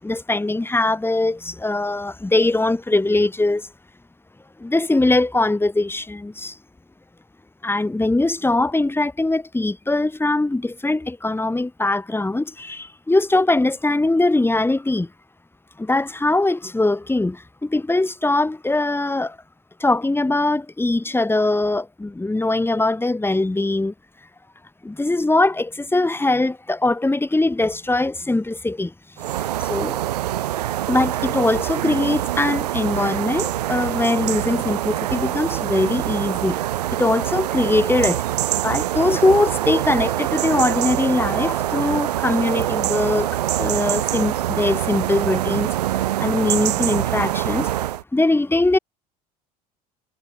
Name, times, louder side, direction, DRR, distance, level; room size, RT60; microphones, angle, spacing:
voice 1, 0.0-3.7 4.6-6.6 7.6-15.1 15.8-19.4 19.8-23.9 24.8-28.9 29.6-30.0 30.9-36.6 36.9-38.2 38.6-43.3 43.6-45.7 46.2-47.7 48.1-48.8, left 2 dB, 10° left, 5.0 m, -21 dB
sound 1, 29.2-48.0, right 13 dB, 80° right, 1.6 m, -24 dB
hypercardioid pair, 70°, 20 cm